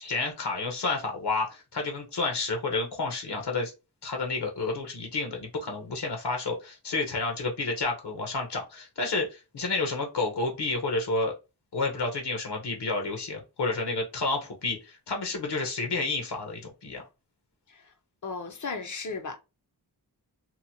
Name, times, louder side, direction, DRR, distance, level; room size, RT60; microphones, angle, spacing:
voice 1, 0.0-3.7 4.0-11.3 11.7-17.0, left 3 dB, 70° left, 0.9 m, -30 dB
voice 2, 18.2-19.4, left 4 dB, 45° left, 0.5 m, -35 dB
2.9 x 2.1 x 2.7 m
wide cardioid pair, 100°, 41 cm